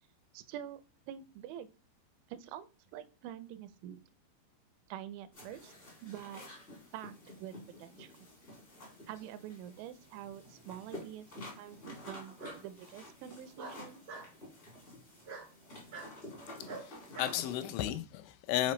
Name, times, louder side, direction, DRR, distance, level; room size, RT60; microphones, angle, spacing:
voice 1, 0.3-1.7 2.3-4.0 4.9-5.7 6.0-6.4 6.9-8.1 9.1-14.0, right 11 dB, 85° right, 2.9 m, -46 dB
sound 1, 5.3-17.7, left 1 dB, 45° left, 0.8 m, -51 dB
Bark, 10.2-10.9 12.4-12.6 13.6-14.3 15.2-15.5 15.9-16.1 16.6-17.4, right 4 dB, 65° right, 1.1 m, -45 dB
voice 2, 16.6-18.7, left 12 dB, 85° left, 3.0 m, -34 dB
7.5 x 4.1 x 3.1 m
omnidirectional pair, 5.4 m